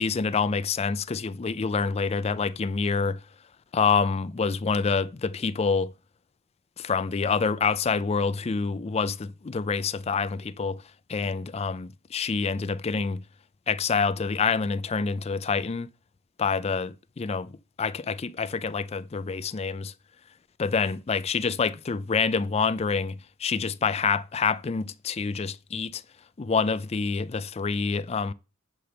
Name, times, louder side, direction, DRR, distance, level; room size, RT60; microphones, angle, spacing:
voice 1, 0.0-3.2 3.7-5.9 6.8-10.8 11.1-13.2 13.7-15.9 16.4-19.9 20.6-26.0 26.4-28.3, left 5 dB, 30° left, 0.4 m, -27 dB
9.9 x 3.4 x 6.6 m
head